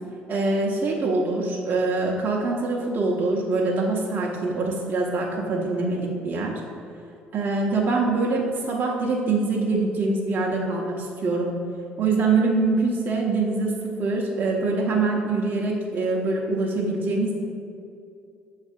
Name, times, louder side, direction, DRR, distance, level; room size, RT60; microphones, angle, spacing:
voice 1, 0.3-6.6 7.3-11.6 12.0-17.4, right 3 dB, 45° right, -2 dB, 0.8 m, -24 dB
6.2 x 3.2 x 5.2 m, 2.5 s
supercardioid pair, 70°, 4 cm